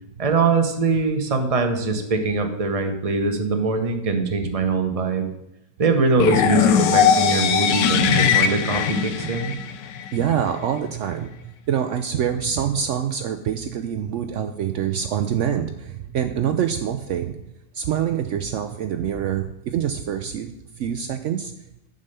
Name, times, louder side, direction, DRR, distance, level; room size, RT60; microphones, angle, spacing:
voice 1, 0.2-5.3 5.8-9.6, right 4 dB, 30° right, 5 dB, 0.7 m, -22 dB
sound 1, 6.2-10.1, left 7 dB, 85° left, 1.3 m, -19 dB
voice 2, 10.1-17.3 17.7-21.5, right 9 dB, 80° right, 7 dB, 0.6 m, -25 dB
7.2 x 5.4 x 6.7 m, 0.88 s
omnidirectional pair, 1.9 m